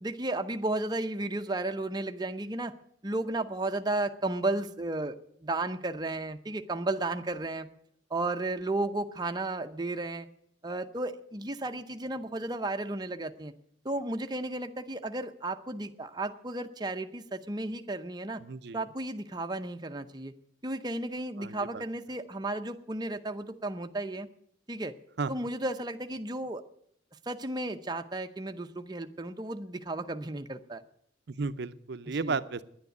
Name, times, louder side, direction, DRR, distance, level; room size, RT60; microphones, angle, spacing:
voice 1, 0.0-2.7 3.0-5.2 5.4-7.7 8.1-10.3 10.6-13.5 13.8-18.4 18.7-20.3 20.6-24.3 24.7-24.9 25.3-26.6 27.3-30.8 32.2-32.4, right 2 dB, 20° right, 6 dB, 0.7 m, -33 dB
voice 2, 18.4-18.8 21.4-21.8 25.2-25.3 31.3-32.6, right 4 dB, 60° right, 13 dB, 0.6 m, -34 dB
10.5 x 9.7 x 9.1 m, 0.70 s
head